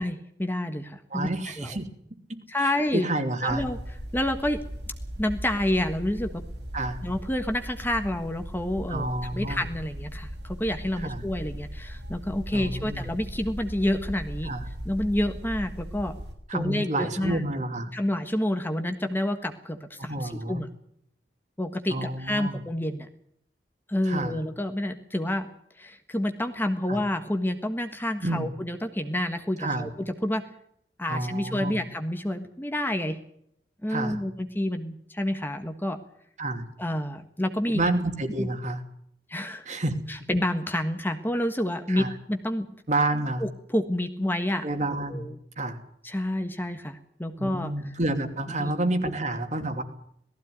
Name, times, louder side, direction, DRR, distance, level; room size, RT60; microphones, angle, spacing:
voice 1, 0.0-1.3 1.6-1.7 2.5-3.1 3.4-3.8 4.1-4.6 5.2-6.4 7.0-9.1 9.3-14.5 14.8-16.1 16.5-17.4 17.9-20.7 21.6-23.1 23.9-25.5 25.8-30.4 31.0-33.2 33.8-36.0 36.8-37.8 38.4-38.5 39.3-39.6 40.1-42.7 43.4-44.6 45.1-45.4 46.0-47.9 48.6-48.7 49.1-49.2, left 1 dB, 10° left, 7 dB, 1.5 m, -29 dB
voice 2, 1.1-1.9 2.3-3.6 6.7-7.0 8.9-9.7 11.0-11.2 12.5-13.1 14.4-14.7 16.5-17.9 20.0-20.6 21.9-22.6 24.0-24.4 26.9-27.0 28.2-28.5 29.6-29.9 31.1-31.8 33.9-34.2 36.4-36.6 37.7-38.8 39.7-40.0 41.9-42.1 42.9-43.4 44.6-45.3 45.6-45.8 47.4-49.8, right 2 dB, 45° right, 6 dB, 2.9 m, -29 dB
sound 1, 3.5-16.3, equal, 85° right, 5.8 m, -38 dB
19.0 x 15.0 x 9.4 m, 0.71 s
head